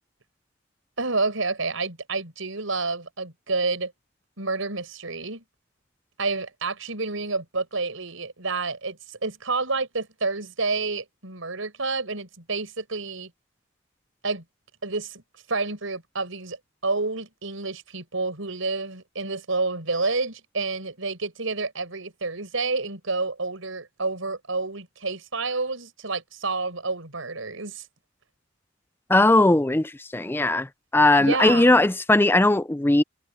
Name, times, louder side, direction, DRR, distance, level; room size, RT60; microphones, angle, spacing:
voice 1, 1.0-3.9 4.4-5.4 6.2-13.3 14.2-14.4 14.8-15.2 15.5-16.6 16.8-27.8 31.2-31.7, right 3 dB, 80° right, 5.0 m, -29 dB
voice 2, 29.1-33.0, left 2 dB, 10° left, 0.5 m, -19 dB
head